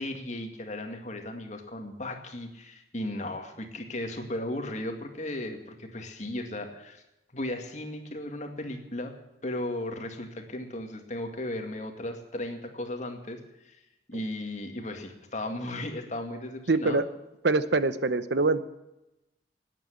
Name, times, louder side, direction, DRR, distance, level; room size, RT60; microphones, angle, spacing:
voice 1, 0.0-7.0 7.3-9.1 9.4-13.8 14.1-17.0, left 1 dB, 45° left, 4 dB, 2.3 m, -36 dB
voice 2, 16.7-17.0 17.4-18.6, right 3 dB, 75° right, 13 dB, 0.9 m, -24 dB
18.5 x 9.1 x 8.5 m, 0.92 s
head